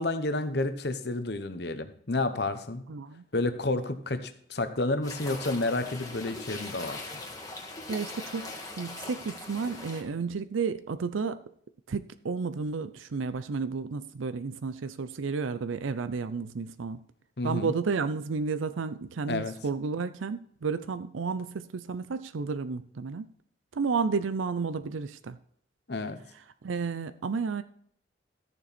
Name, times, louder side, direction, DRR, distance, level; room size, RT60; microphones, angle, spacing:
voice 1, 0.0-2.8 3.3-7.0 17.4-17.7 19.3-19.5 25.9-26.2, left 2 dB, 55° left, 9 dB, 1.0 m, -30 dB
voice 2, 2.9-3.2 7.9-11.4 11.9-17.0 17.4-23.3 23.7-25.4 26.6-27.6, right 5 dB, 90° right, 12 dB, 0.5 m, -32 dB
sound 1, 5.0-10.0, left 2 dB, 20° left, 1.6 m, -41 dB
13.5 x 7.0 x 4.3 m, 0.64 s
head